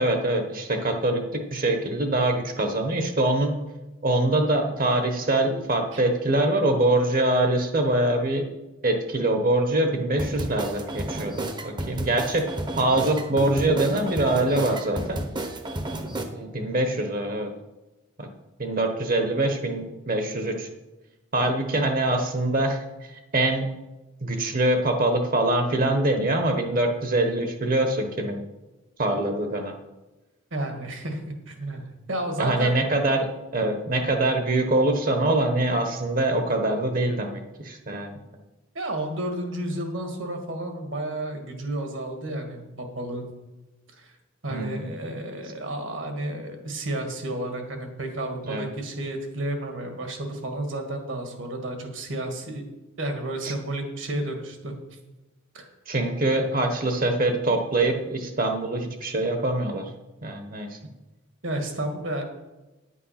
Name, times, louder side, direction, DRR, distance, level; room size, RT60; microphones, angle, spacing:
voice 1, 0.0-3.6 4.0-8.4 8.8-12.5 12.8-15.2 16.3-17.5 18.2-18.3 18.6-20.7 21.3-22.8 23.3-23.6 24.2-28.4 29.0-29.7 32.4-33.3 33.5-38.2 44.5-44.8 48.4-48.6 53.4-53.5 55.9-59.9 60.2-60.8, right 1 dB, 40° right, 5 dB, 1.1 m, -24 dB
sound 1, 10.2-16.2, right 1 dB, 20° right, 0.9 m, -31 dB
voice 2, 30.5-32.8 38.8-43.3 44.0-44.1 44.4-52.6 53.0-54.7 55.5-55.7 61.4-62.2, right 1 dB, 65° right, 4 dB, 1.9 m, -31 dB
9.4 x 8.4 x 5.7 m, 1.1 s
head